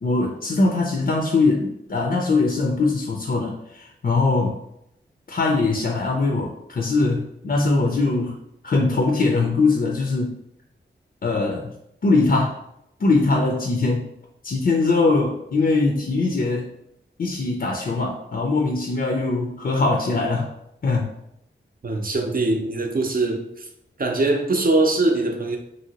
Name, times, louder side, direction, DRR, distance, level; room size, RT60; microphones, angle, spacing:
voice 1, 0.0-4.6 5.3-8.4 8.6-10.4 11.2-11.7 12.0-12.6 13.0-14.1 14.4-16.7 17.2-20.5 20.8-21.1, left 3 dB, 50° left, 0 dB, 0.5 m, -21 dB
voice 2, 21.8-23.7 24.0-25.6, right 2 dB, 45° right, 2 dB, 0.6 m, -22 dB
2.8 x 2.8 x 2.9 m, 0.78 s
wide cardioid pair, 65°, 20 cm